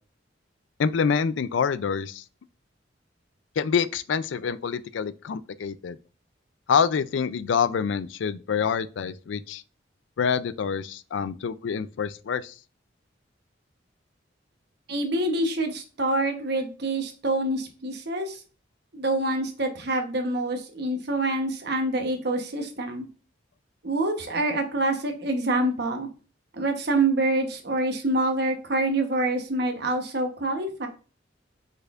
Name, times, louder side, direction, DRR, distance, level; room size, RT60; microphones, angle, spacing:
voice 1, 0.8-2.2 3.6-6.0 6.7-9.6 10.2-12.5, left 6 dB, 75° left, 0.4 m, -26 dB
voice 2, 14.9-18.4 18.9-23.1 23.8-26.1 26.5-30.9, right 2 dB, 60° right, 1.0 m, -26 dB
5.2 x 4.2 x 2.4 m
head